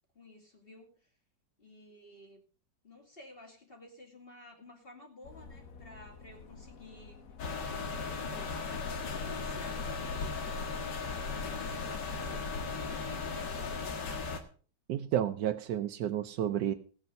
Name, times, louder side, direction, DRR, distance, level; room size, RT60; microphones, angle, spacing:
voice 1, 0.1-1.1 1.6-2.4 2.8-7.2 7.7-14.0, left 1 dB, 30° left, 2 dB, 2.8 m, -53 dB
sound 1, 5.2-14.4, left 5 dB, 55° left, 1.5 m, -52 dB
sound 2, 7.4-14.4, left 4 dB, 75° left, 2.2 m, -36 dB
voice 2, 14.9-16.7, right 11 dB, 80° right, 6 dB, 1.4 m, -31 dB
16.0 x 8.3 x 5.4 m, 0.41 s
omnidirectional pair, 1.9 m